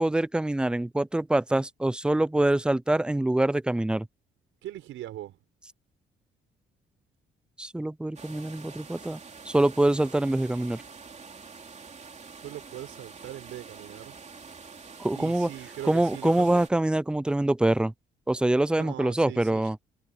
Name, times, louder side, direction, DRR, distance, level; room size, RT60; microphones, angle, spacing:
voice 1, 0.0-4.1 7.6-9.2 9.5-10.8 15.0-15.5 15.8-17.9 18.3-19.8, right 1 dB, 5° right, 0.3 m, -25 dB
voice 2, 4.6-5.4 12.4-14.2 15.1-16.7 18.8-19.7, right 13 dB, 85° right, 5.3 m, -40 dB
sound 1, 8.2-16.7, right 5 dB, 35° right, 3.2 m, -46 dB
cardioid pair, 90°, 20 cm